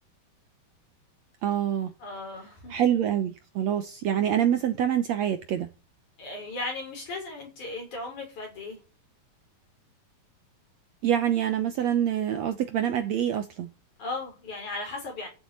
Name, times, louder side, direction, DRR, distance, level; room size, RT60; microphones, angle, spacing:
voice 1, 1.4-1.9 2.7-5.7 11.0-13.7, right 10 dB, 65° right, 1.9 m, -26 dB
voice 2, 2.0-2.7 6.2-8.8 14.0-15.3, left 2 dB, 60° left, 7.3 m, -36 dB
13.0 x 7.5 x 8.7 m
omnidirectional pair, 3.9 m